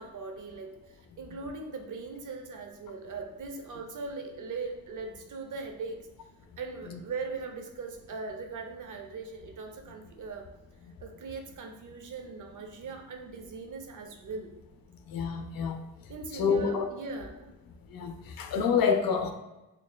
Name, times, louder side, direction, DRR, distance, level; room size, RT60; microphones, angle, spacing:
voice 1, 0.0-6.0 6.6-10.5 11.0-14.5 16.1-17.5, right 4 dB, 45° right, 4 dB, 0.6 m, -40 dB
voice 2, 15.1-15.8 16.3-16.9 17.9-19.3, left 6 dB, 55° left, 5 dB, 0.5 m, -27 dB
4.2 x 3.1 x 2.2 m, 1.0 s
cardioid pair, 105°, 41 cm